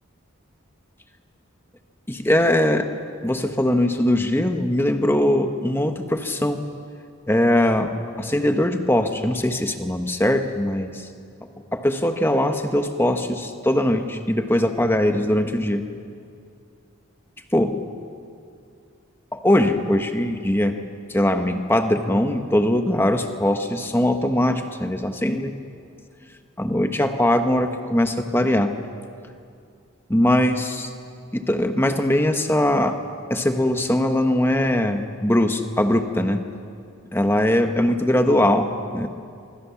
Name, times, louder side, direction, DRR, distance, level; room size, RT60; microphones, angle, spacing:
voice 1, 2.1-2.9 3.2-6.6 7.3-11.1 11.7-15.9 17.5-17.7 19.3-20.8 21.1-25.5 26.6-28.7 30.1-30.9 31.3-33.0 33.3-36.5 37.1-39.1, left 1 dB, 10° left, 6 dB, 1.3 m, -21 dB
25.5 x 23.5 x 7.2 m, 2.4 s
head